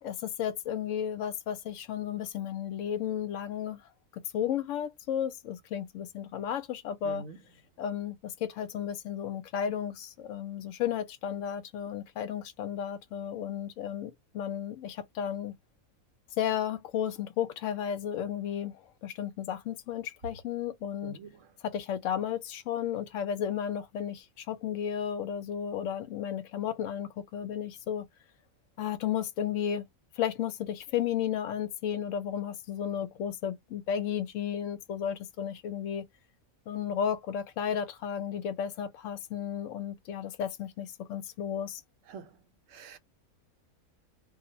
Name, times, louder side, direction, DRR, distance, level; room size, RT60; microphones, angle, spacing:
voice 1, 0.0-3.8 4.3-7.3 7.8-15.5 16.4-18.7 19.0-21.2 21.6-28.1 28.8-29.9 30.2-36.0 36.7-41.8, left 9 dB, 70° left, 0.9 m, -33 dB
voice 2, 7.0-7.4 21.0-21.3 42.1-42.3 42.7-43.0, right 4 dB, 70° right, 0.9 m, -44 dB
2.4 x 2.0 x 2.5 m
omnidirectional pair, 1.5 m